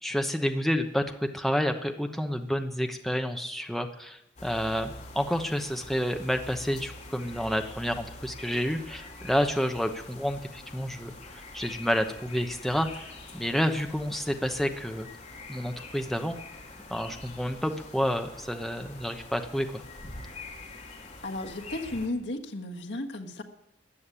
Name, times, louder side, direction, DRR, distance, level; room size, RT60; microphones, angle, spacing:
voice 1, 0.0-15.1 15.5-16.4 16.9-19.8, equal, ahead, 5 dB, 0.9 m, -29 dB
sound 1, 4.4-22.1, left 2 dB, 40° left, 2.7 m, -45 dB
voice 2, 21.2-23.4, left 2 dB, 80° left, 2 dB, 1.5 m, -34 dB
14.5 x 8.6 x 9.9 m, 0.84 s
head